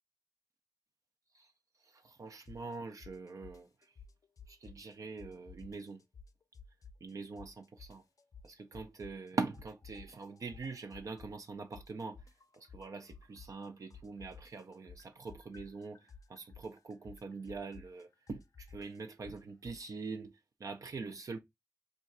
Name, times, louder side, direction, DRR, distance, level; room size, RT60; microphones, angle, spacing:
voice 1, 1.8-3.9 4.5-6.0 7.0-8.0 8.4-12.3 12.5-21.4, right 4 dB, 65° right, 0.4 m, -43 dB
sound 1, 2.4-2.7 3.0-4.9 5.2-7.1 7.4-9.3 9.5-13.6 13.9-19.8, left 5 dB, 65° left, 0.4 m, -54 dB
2.4 x 2.3 x 4.0 m
cardioid pair, 50°, 6 cm